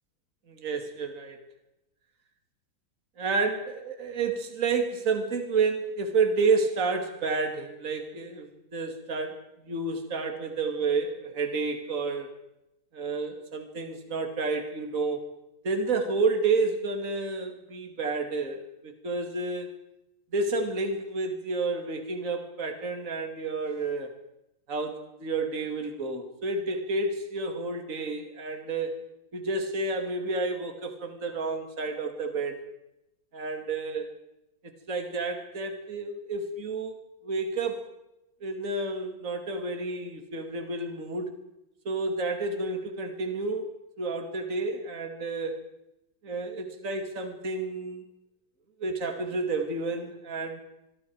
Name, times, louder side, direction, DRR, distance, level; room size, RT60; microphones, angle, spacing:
voice 1, 0.5-1.4 3.2-12.3 12.9-15.2 15.6-19.7 20.3-24.1 24.7-29.0 29.3-32.6 33.3-34.1 34.6-36.9 37.2-37.9 38.4-41.3 41.8-45.6 46.2-48.0 48.8-50.6, right 3 dB, 40° right, 5 dB, 2.8 m, -30 dB
25.0 x 23.5 x 4.8 m, 0.89 s
omnidirectional pair, 2.3 m